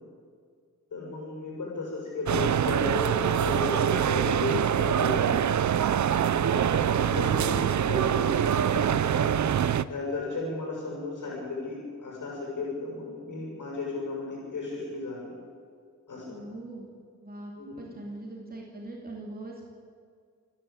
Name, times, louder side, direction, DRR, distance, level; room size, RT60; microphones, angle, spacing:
voice 1, 0.9-5.4 6.4-9.2 9.9-15.3 16.1-16.4 17.6-17.9, left 3 dB, 80° left, -3 dB, 7.2 m, -34 dB
sound 1, 2.3-9.8, right 9 dB, 65° right, 0.6 m, -24 dB
voice 2, 16.3-16.9 17.2-17.5 17.8-19.7, right 2 dB, 30° right, -2 dB, 3.1 m, -41 dB
27.5 x 11.0 x 9.0 m, 2.1 s
wide cardioid pair, 130°, 31 cm